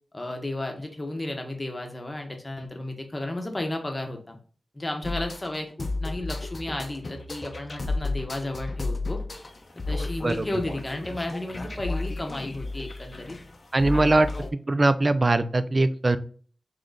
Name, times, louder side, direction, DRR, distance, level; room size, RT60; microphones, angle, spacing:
voice 1, 0.1-4.4 4.7-9.2 9.9-13.4 13.9-14.2, left 1 dB, 25° left, 3 dB, 0.9 m, -33 dB
sound 1, 5.0-14.5, left 2 dB, 40° left, 0.6 m, -33 dB
voice 2, 13.7-14.3 14.7-16.2, right 2 dB, 35° right, 12 dB, 0.3 m, -21 dB
3.7 x 3.2 x 3.8 m, 0.43 s
wide cardioid pair, 110°, 0 cm